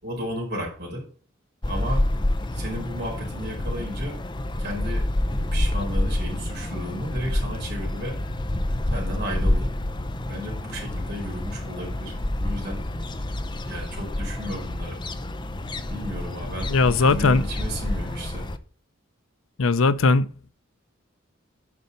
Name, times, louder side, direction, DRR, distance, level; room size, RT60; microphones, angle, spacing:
voice 1, 0.0-1.1 1.7-2.1 2.5-4.2 4.6-8.2 8.9-9.7 10.2-12.8 13.7-15.0 15.9-18.5, equal, 55° right, 4.5 m, -34 dB
sound 1, 1.6-18.6, left 1 dB, 25° left, 0.6 m, -28 dB
voice 2, 16.7-17.4 19.6-20.3, left 3 dB, 80° left, 0.6 m, -19 dB
9.7 x 5.5 x 5.2 m
head